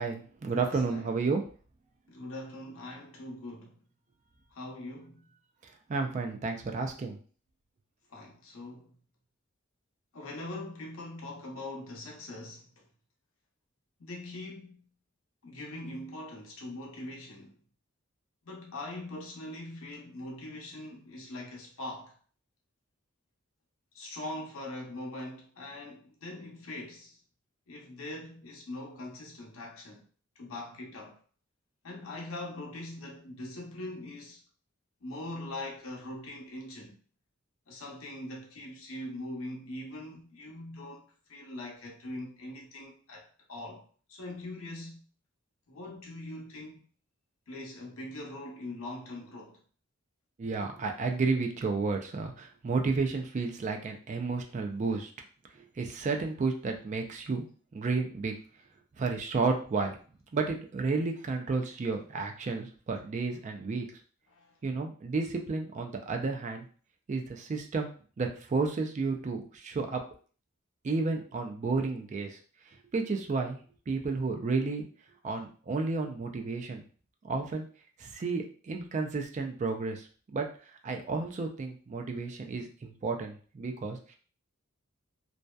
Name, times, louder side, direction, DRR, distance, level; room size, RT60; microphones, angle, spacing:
voice 1, 0.0-1.4 5.9-7.2 50.4-55.1 55.5-57.5 57.7-58.3 59.0-60.0 60.3-63.9 64.6-66.6 67.1-67.9 68.2-70.0 70.8-72.4 72.9-73.6 73.9-74.9 75.2-76.8 77.2-77.6 78.0-80.5 80.8-84.1, right 4 dB, 35° right, 0.3 m, -32 dB
voice 2, 0.6-1.1 2.1-3.8 4.5-5.3 8.1-8.9 10.1-12.7 14.0-14.8 15.4-17.5 18.4-22.1 23.9-27.2 27.7-30.0 30.4-31.2 31.8-34.4 35.0-37.0 37.7-41.0 41.3-43.8 44.1-45.0 45.7-46.8 47.5-49.6 64.3-64.5, left 1 dB, 85° left, 0.7 m, -42 dB
2.6 x 2.1 x 2.2 m
head